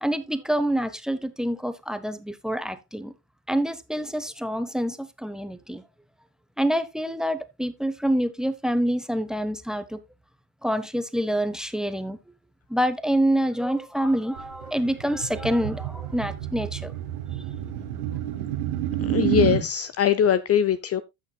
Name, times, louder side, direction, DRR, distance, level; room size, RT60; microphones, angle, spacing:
voice 1, 0.0-3.1 3.5-5.8 6.6-10.0 10.6-12.2 12.7-16.9, equal, ahead, 1.0 m, -26 dB
sound 1, 14.4-19.6, right 12 dB, 90° right, 2.5 m, -29 dB
voice 2, 19.1-21.0, left 9 dB, 35° left, 0.6 m, -22 dB
15.0 x 6.4 x 2.3 m
supercardioid pair, 100°, 44 cm